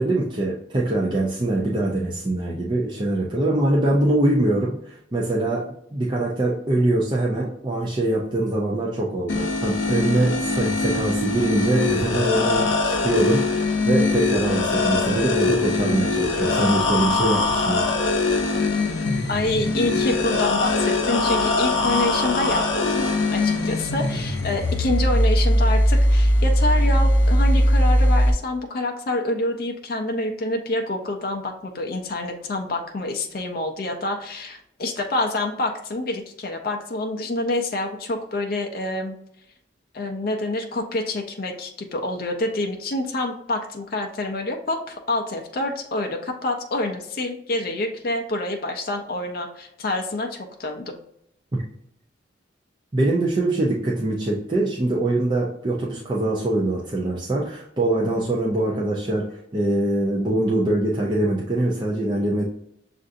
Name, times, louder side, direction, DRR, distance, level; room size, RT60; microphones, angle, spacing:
voice 1, 0.0-5.6 5.9-17.9 51.5-51.6 52.9-62.4, right 1 dB, 25° right, -4 dB, 0.5 m, -23 dB
sound 1, 9.3-28.3, left 2 dB, 90° left, 0.7 m, -21 dB
voice 2, 19.3-39.1 39.9-50.9, left 2 dB, 50° left, 3 dB, 0.4 m, -27 dB
6.4 x 2.5 x 2.5 m, 0.75 s
head